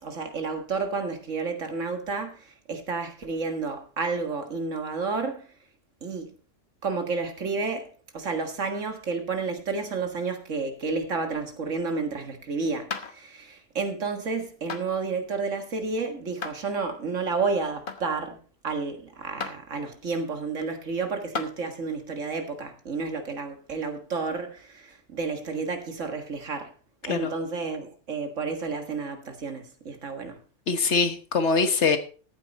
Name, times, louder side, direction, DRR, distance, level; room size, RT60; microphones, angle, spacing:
voice 1, 0.0-5.5 6.0-6.3 6.8-18.4 18.6-26.7 27.1-30.4, right 4 dB, 80° right, 2.1 m, -31 dB
sound 1, 12.9-13.2 14.7-14.8 16.4-16.6 17.9-18.1 19.4-19.6 20.6-20.7 21.3-21.5 23.0-23.1, left 4 dB, 45° left, 1.2 m, -33 dB
voice 2, 30.7-32.0, left 4 dB, 65° left, 1.6 m, -23 dB
14.0 x 8.8 x 4.2 m
omnidirectional pair, 1.3 m